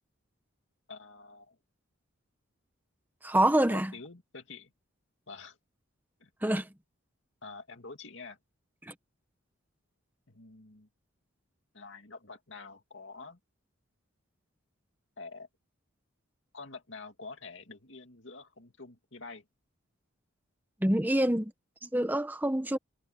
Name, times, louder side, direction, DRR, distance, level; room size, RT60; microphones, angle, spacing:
voice 1, 0.9-1.6 3.7-4.7 5.3-5.6 6.2-6.3 7.4-8.4 10.3-10.9 11.7-13.4 15.2-15.5 16.5-19.4, left 4 dB, 60° left, 2.6 m, -47 dB
voice 2, 3.2-3.9 6.4-6.7 8.8-8.9 20.8-21.5 21.8-22.8, right 1 dB, 10° right, 1.2 m, -26 dB
head